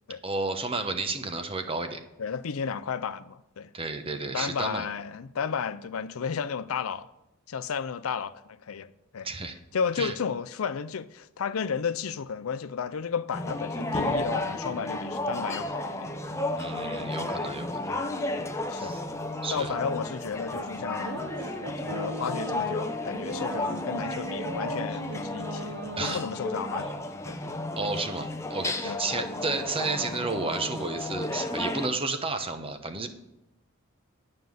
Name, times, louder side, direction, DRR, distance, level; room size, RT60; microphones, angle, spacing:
voice 1, 0.2-2.0 3.7-4.9 9.2-9.5 10.0-10.1 16.5-17.9 18.8-19.0 19.4-19.7 26.0-26.2 27.8-33.1, right 3 dB, 25° right, 0.9 m, -32 dB
voice 2, 2.2-3.7 4.3-7.1 7.5-9.3 9.7-16.1 17.9-18.1 18.7-18.9 19.5-21.2 21.8-27.0 27.3-27.4 28.8-29.3, left 6 dB, 85° left, 0.5 m, -33 dB
sound 1, 13.3-31.9, left 2 dB, 15° left, 0.7 m, -33 dB
sound 2, 21.0-26.9, right 3 dB, 60° right, 0.8 m, -40 dB
11.5 x 5.4 x 7.7 m
head